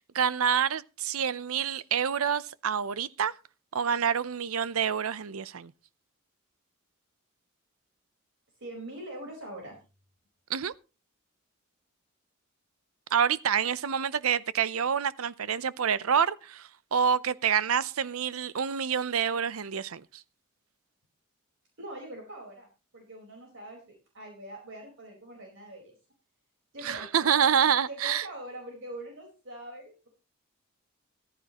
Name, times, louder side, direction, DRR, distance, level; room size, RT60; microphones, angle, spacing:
voice 1, 0.1-3.3 3.7-5.7 10.5-10.7 13.1-20.0 26.8-28.2, right 7 dB, 90° right, 0.6 m, -27 dB
voice 2, 8.6-9.8 21.8-22.7 22.9-25.9 26.7-27.5 27.9-30.1, right 1 dB, 60° right, 4.5 m, -43 dB
15.0 x 14.5 x 3.0 m
head